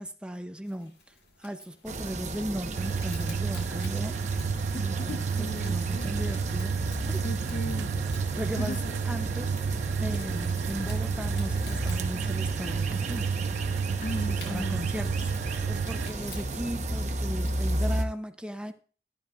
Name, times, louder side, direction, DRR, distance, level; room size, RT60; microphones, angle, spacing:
voice 1, 0.0-4.5 4.8-7.2 8.4-8.8 9.0-9.6 10.0-13.3 14.4-18.7, equal, 5° right, 0.5 m, -37 dB
sound 1, 0.6-17.6, left 4 dB, 85° left, 4.9 m, -54 dB
sound 2, 1.9-18.1, right 1 dB, 40° right, 0.9 m, -33 dB
sound 3, 2.7-16.1, right 6 dB, 80° right, 0.3 m, -31 dB
voice 2, 4.7-6.3 7.2-7.9 8.6-8.9 9.2-9.3 14.0-14.9, left 1 dB, 40° left, 0.6 m, -37 dB
13.5 x 10.5 x 2.4 m
head